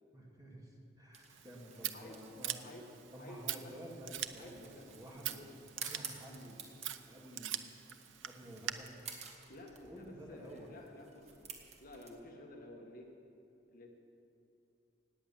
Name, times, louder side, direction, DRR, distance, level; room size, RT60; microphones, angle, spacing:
voice 1, 0.1-2.8 3.1-5.4 5.8-6.6 7.1-7.5 8.2-8.9 9.8-10.7, right 1 dB, 20° right, -2 dB, 2.5 m, -51 dB
sound 1, 1.1-12.1, right 5 dB, 35° right, 1.5 m, -53 dB
Scissors, 1.3-8.7, right 11 dB, 90° right, 0.7 m, -44 dB
voice 2, 1.9-2.3 2.6-2.8 3.2-3.9 4.4-4.8 5.2-5.5 9.5-13.1 13.7-13.9, left 1 dB, 50° left, 1 dB, 1.7 m, -53 dB
17.5 x 9.4 x 7.3 m, 2.8 s
head